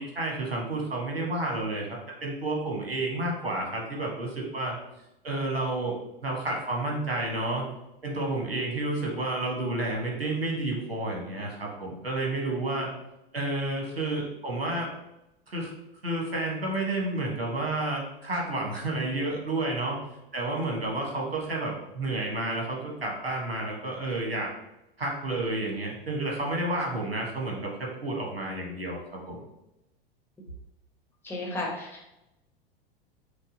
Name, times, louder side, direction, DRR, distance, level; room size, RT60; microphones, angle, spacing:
voice 1, 0.0-1.9 2.2-4.7 5.2-7.6 8.0-12.9 13.3-14.9 15.5-15.7 16.0-20.0 20.3-24.5 25.0-29.4, right 2 dB, 80° right, -2 dB, 1.3 m, -30 dB
voice 2, 31.2-32.1, left 2 dB, 5° left, -3 dB, 1.1 m, -34 dB
5.3 x 2.1 x 3.8 m, 0.91 s
figure-of-eight pair, 90°, 29 cm